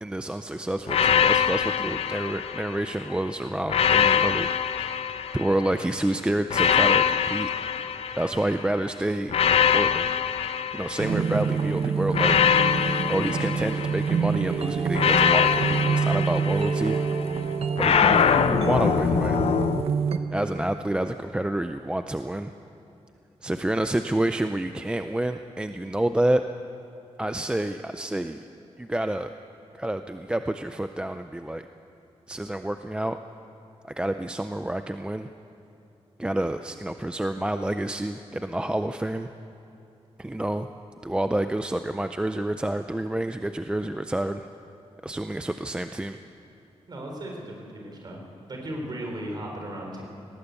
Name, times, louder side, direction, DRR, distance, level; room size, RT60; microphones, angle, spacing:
voice 1, 0.0-4.5 4.8-4.9 5.3-7.5 8.1-10.1 10.7-12.4 13.1-17.0 17.8-19.4 20.3-22.5 23.4-26.4 27.2-28.4 28.8-29.3 29.7-31.7 32.3-33.2 34.0-35.3 36.2-39.3 40.2-40.7 41.0-44.5 45.0-46.2, right 1 dB, 10° right, 8 dB, 0.4 m, -28 dB
sound 1, 0.9-3.0 3.7-5.8 6.5-8.7 9.3-11.5 12.1-14.3 15.0-17.1 17.8-19.8, left 8 dB, 65° left, 0.6 m, -23 dB
sound 2, 11.0-20.2, right 5 dB, 65° right, 1.1 m, -27 dB
voice 2, 46.9-48.2 48.5-50.0, right 1 dB, 40° right, 0 dB, 3.9 m, -36 dB
19.0 x 17.0 x 8.2 m, 2.8 s
wide cardioid pair, 165°, 11 cm